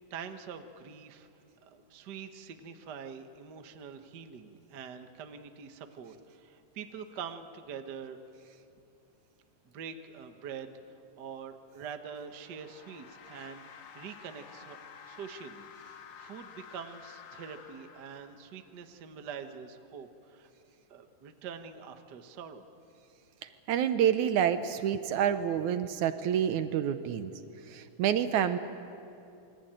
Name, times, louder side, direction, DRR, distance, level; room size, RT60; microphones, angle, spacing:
voice 1, 0.1-1.3 1.6-8.2 9.7-14.8 15.1-20.5 20.9-22.6, right 7 dB, 50° right, 7 dB, 1.3 m, -45 dB
sound 1, 11.7-18.8, left 7 dB, 85° left, 3.2 m, -51 dB
voice 2, 23.4-27.3 27.7-28.6, right 9 dB, 70° right, 10 dB, 2.2 m, -28 dB
28.0 x 23.0 x 9.0 m, 2.6 s
omnidirectional pair, 3.7 m